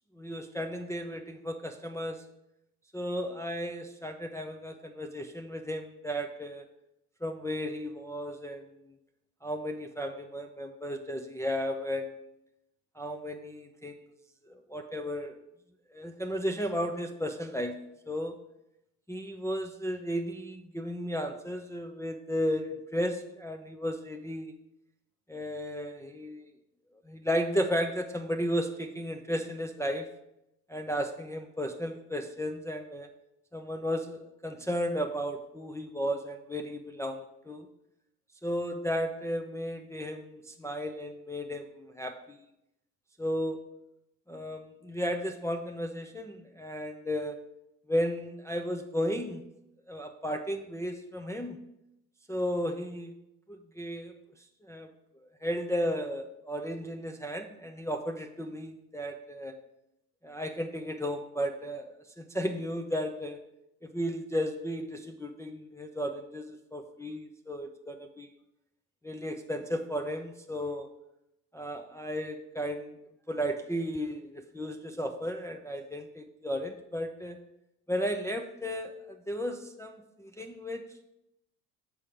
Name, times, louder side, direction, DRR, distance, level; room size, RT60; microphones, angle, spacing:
voice 1, 0.1-2.2 2.9-6.6 7.2-8.7 9.4-12.2 13.0-14.0 14.4-15.4 15.9-17.8 18.1-18.3 19.1-24.5 25.3-26.5 27.1-30.1 30.7-33.1 33.5-37.7 38.4-42.4 43.2-43.6 44.3-47.4 47.9-49.4 49.9-51.6 52.3-53.1 53.5-54.1 54.6-54.9 55.2-59.5 60.2-63.4 63.8-68.3 69.0-70.9 71.5-73.0 73.3-77.4 77.9-81.0, equal, 5° left, 3 dB, 0.5 m, -34 dB
7.0 x 4.5 x 5.1 m, 0.84 s
hypercardioid pair, 65°, 48 cm